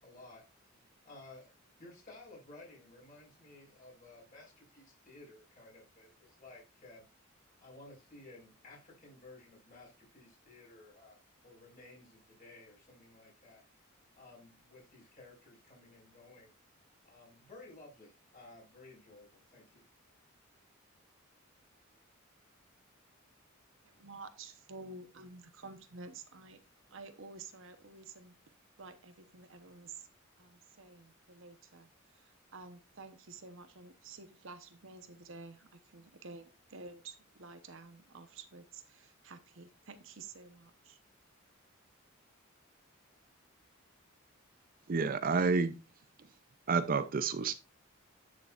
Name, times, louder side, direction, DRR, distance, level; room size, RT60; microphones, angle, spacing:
voice 1, 0.0-1.5 1.8-7.0 7.6-11.2 11.4-13.6 14.2-16.5 17.0-19.9, left 2 dB, 40° left, -3 dB, 5.0 m, -55 dB
voice 2, 23.8-26.6 26.9-28.3 28.8-30.1 30.4-31.9 32.1-41.0, right 3 dB, 65° right, 9 dB, 1.0 m, -51 dB
voice 3, 44.9-45.8 46.7-47.5, right 4 dB, 45° right, 12 dB, 0.5 m, -29 dB
10.0 x 6.7 x 2.5 m, 0.27 s
head